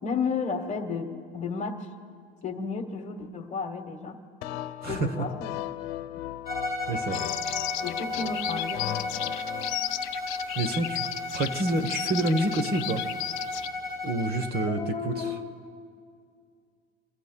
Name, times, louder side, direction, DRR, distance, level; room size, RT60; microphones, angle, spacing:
voice 1, 0.0-1.9 2.4-4.2 4.9-5.6 7.8-9.0 14.7-15.5, left 5 dB, 25° left, 6 dB, 1.2 m, -32 dB
sound 1, 4.4-9.7, left 14 dB, 85° left, 0.9 m, -37 dB
voice 2, 4.8-5.3 6.9-7.2 10.6-11.1 11.3-13.0 14.0-15.4, right 2 dB, 30° right, 9 dB, 1.1 m, -28 dB
Bowed string instrument, 6.4-14.8, left 2 dB, 15° right, 5.5 m, -34 dB
sound 2, 7.1-13.7, left 17 dB, 45° left, 0.4 m, -35 dB
28.0 x 22.5 x 2.3 m, 2.3 s
cardioid pair, 150°, 30 cm